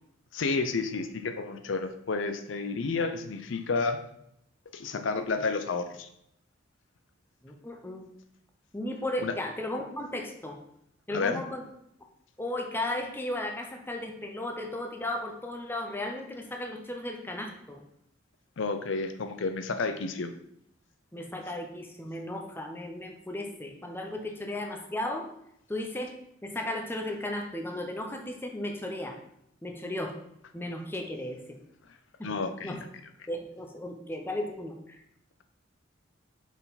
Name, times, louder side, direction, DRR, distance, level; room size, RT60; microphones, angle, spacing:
voice 1, 0.3-4.0 4.7-6.1 9.2-9.3 11.1-11.4 18.6-20.3 32.2-32.8, left 4 dB, 75° left, 8 dB, 0.5 m, -30 dB
voice 2, 7.4-8.1 8.7-10.6 11.1-11.6 12.4-17.8 21.1-25.3 25.7-26.1 26.4-29.2 29.6-30.2 30.5-31.6 32.2-32.3 32.6-32.8 33.3-35.0, left 1 dB, 10° left, 3 dB, 0.6 m, -35 dB
5.6 x 4.5 x 4.0 m, 0.75 s
head